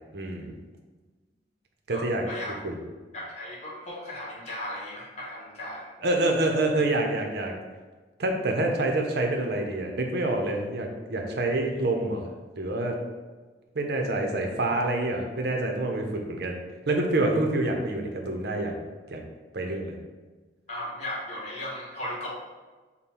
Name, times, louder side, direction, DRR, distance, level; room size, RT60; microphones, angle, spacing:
voice 1, 0.1-0.5 1.9-2.2 2.6-2.8 6.0-7.5 8.2-12.3 12.6-12.9 13.7-18.7 19.1-19.2 19.5-19.9, right 2 dB, 65° right, 2 dB, 0.7 m, -27 dB
voice 2, 1.9-2.5 3.1-6.0 20.7-22.3, left 1 dB, 40° left, -5 dB, 1.3 m, -36 dB
5.4 x 2.2 x 4.3 m, 1.3 s
head